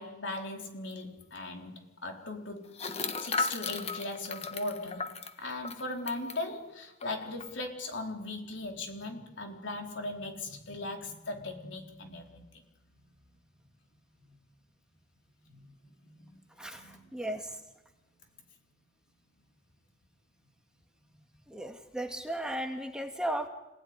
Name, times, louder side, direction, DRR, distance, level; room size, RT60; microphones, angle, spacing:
voice 1, 0.0-12.4 12.9-13.3 15.4-15.7 16.0-16.4 16.7-17.1, left 2 dB, 70° left, 3 dB, 4.4 m, -39 dB
sound 1, 0.9-1.0 1.2-1.3 2.7-6.4 7.0-7.1 7.4-7.7, left 4 dB, 35° left, 1.5 m, -36 dB
voice 2, 16.6-17.6 21.5-23.5, right 1 dB, 5° right, 3 dB, 2.2 m, -35 dB
28.0 x 18.5 x 10.0 m, 0.96 s
head